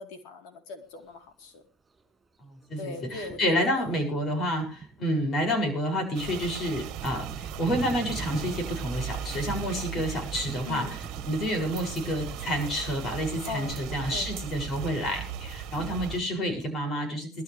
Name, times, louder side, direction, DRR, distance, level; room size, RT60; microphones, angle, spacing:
voice 1, 0.0-1.6 2.8-3.9 4.3-4.4 10.6-11.0 13.5-13.8 14.1-14.3 15.8-15.9, left 4 dB, 60° left, 4 dB, 3.9 m, -40 dB
Thunder, 0.8-1.0 1.9-2.0 2.6-2.7 3.1-16.8, right 4 dB, 20° right, 7.2 m, -45 dB
voice 2, 2.4-11.0 11.2-17.4, equal, 35° left, 4 dB, 7.2 m, -29 dB
sound 1, 6.1-16.2, right 9 dB, 55° right, 2.0 m, -38 dB
21.5 x 12.5 x 3.5 m, 0.36 s
supercardioid pair, 105°, 0 cm